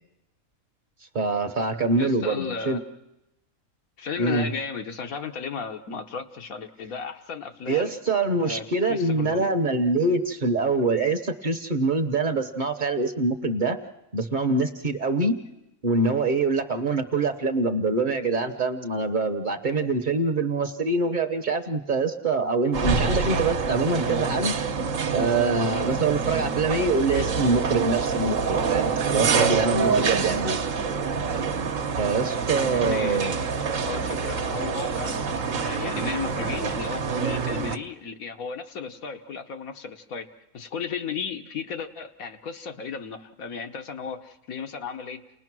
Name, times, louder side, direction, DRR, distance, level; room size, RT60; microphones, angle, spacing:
voice 1, 1.1-2.8 4.2-4.5 7.7-13.8 14.1-15.3 15.8-24.6 25.1-30.6 32.0-33.4, right 3 dB, 40° right, 7 dB, 1.0 m, -25 dB
voice 2, 2.0-2.9 4.0-8.0 8.4-9.5 32.7-33.2 33.8-35.2 35.6-40.3 40.5-45.2, left 6 dB, 85° left, 5 dB, 1.5 m, -34 dB
sound 1, 22.7-37.8, right 5 dB, 70° right, 1.4 m, -26 dB
29.5 x 20.0 x 6.1 m, 0.95 s
omnidirectional pair, 1.4 m